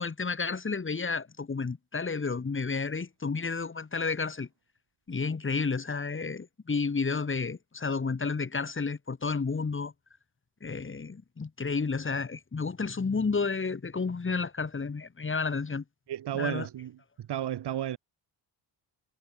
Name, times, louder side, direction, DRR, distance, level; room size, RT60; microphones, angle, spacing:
voice 1, 0.0-4.5 5.1-9.9 10.6-15.8 16.3-16.7, left 4 dB, 30° left, 7.0 m, -31 dB
voice 2, 16.1-16.9 17.3-18.0, right 11 dB, 70° right, 5.7 m, -32 dB
cardioid pair, 110°, 42 cm